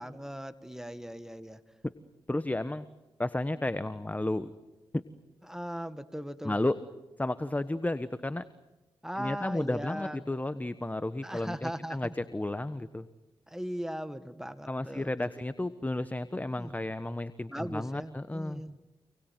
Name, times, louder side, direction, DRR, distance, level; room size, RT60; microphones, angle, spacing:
voice 1, 0.0-1.6 5.5-6.6 9.0-10.3 11.2-12.1 13.5-15.3 16.6-16.8 17.5-18.8, equal, 5° right, 11 dB, 1.8 m, -39 dB
voice 2, 2.3-2.9 3.2-4.5 4.9-5.0 6.4-6.8 7.2-8.5 9.2-13.1 14.7-18.6, left 1 dB, 15° left, 13 dB, 1.2 m, -32 dB
28.5 x 20.5 x 9.2 m, 1.1 s
supercardioid pair, 45°, 9 cm